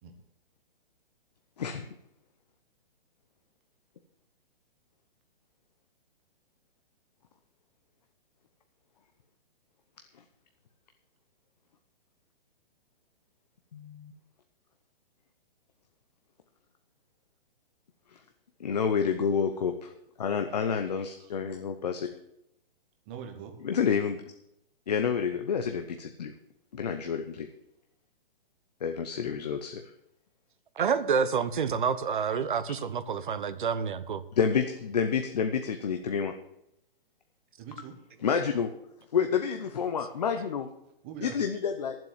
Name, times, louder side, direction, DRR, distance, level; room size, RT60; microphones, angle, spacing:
voice 1, 1.6-1.9 13.7-14.1 18.6-19.9 20.2-22.1 23.6-24.2 24.9-26.3 26.7-27.5 28.8-29.8 34.4-36.3 38.2-38.7 39.1-40.7 41.2-42.0, left 6 dB, 45° left, 6 dB, 0.9 m, -29 dB
voice 2, 20.9-21.3 23.1-23.5 37.6-37.9 40.6-41.4, right 8 dB, 10° right, 5 dB, 0.8 m, -44 dB
voice 3, 30.8-34.2, right 6 dB, 55° right, 13 dB, 1.0 m, -28 dB
12.0 x 7.7 x 7.3 m, 0.81 s
hypercardioid pair, 180°, 29 cm